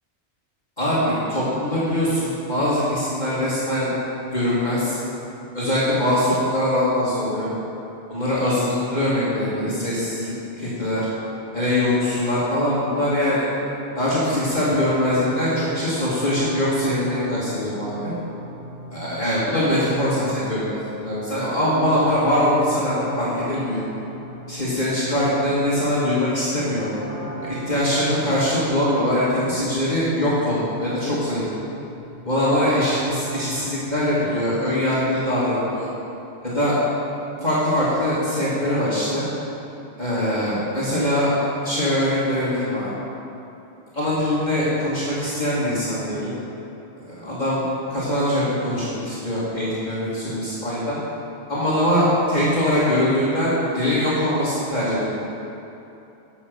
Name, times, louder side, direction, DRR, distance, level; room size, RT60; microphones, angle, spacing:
voice 1, 0.8-3.9 4.3-5.0 5.5-7.5 8.1-11.0 11.5-13.5 13.9-18.1 18.9-23.9 24.5-26.9 27.4-31.4 32.2-35.9 36.4-36.8 37.4-39.2 40.0-41.3 41.6-42.9 43.9-46.3 47.1-51.0 51.5-55.0, left 1 dB, 40° left, -10 dB, 2.2 m, -22 dB
sound 1, 14.1-33.7, equal, 55° left, 2.5 m, -38 dB
11.5 x 6.0 x 6.8 m, 2.9 s
omnidirectional pair, 1.2 m